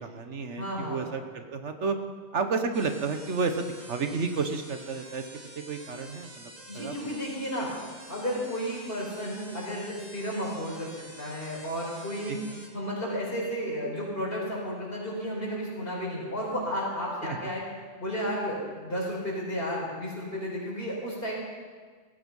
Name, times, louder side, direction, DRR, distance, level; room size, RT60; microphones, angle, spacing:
voice 1, 0.0-2.0 2.3-5.3 5.6-6.9 12.3-12.6 17.2-17.4, right 4 dB, 75° right, 7 dB, 1.5 m, -31 dB
voice 2, 0.6-1.0 6.7-7.7 8.1-10.9 11.2-12.4 12.7-17.6 18.0-21.3, equal, 50° left, -4 dB, 5.4 m, -32 dB
sound 1, 2.7-12.7, right 1 dB, 20° right, 2.0 m, -48 dB
18.0 x 14.5 x 5.5 m, 1.5 s
omnidirectional pair, 1.2 m